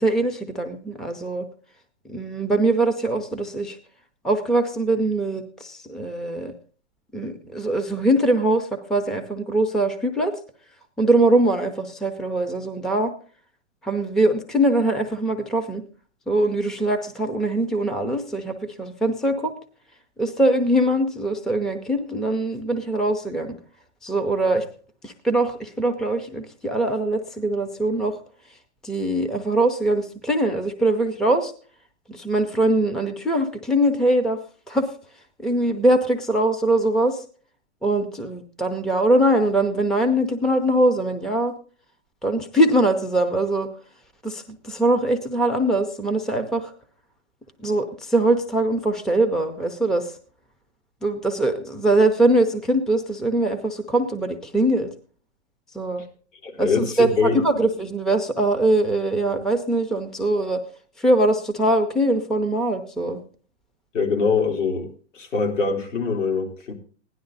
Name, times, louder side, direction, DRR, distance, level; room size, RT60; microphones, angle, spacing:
voice 1, 0.0-1.5 2.1-3.8 4.2-6.5 7.1-10.3 11.0-13.1 13.8-15.8 16.3-19.5 20.2-23.5 24.0-24.6 25.0-28.1 28.8-31.5 32.1-34.4 34.7-34.9 35.4-37.2 37.8-41.5 42.2-43.7 44.2-46.7 47.6-50.2 51.0-54.9 55.7-56.0 56.6-60.6 61.0-63.2, right 1 dB, ahead, 7 dB, 0.6 m, -22 dB
voice 2, 56.4-57.4 63.9-66.7, left 4 dB, 75° left, 2 dB, 3.6 m, -23 dB
16.0 x 11.0 x 4.0 m, 0.42 s
hypercardioid pair, 140°, 37 cm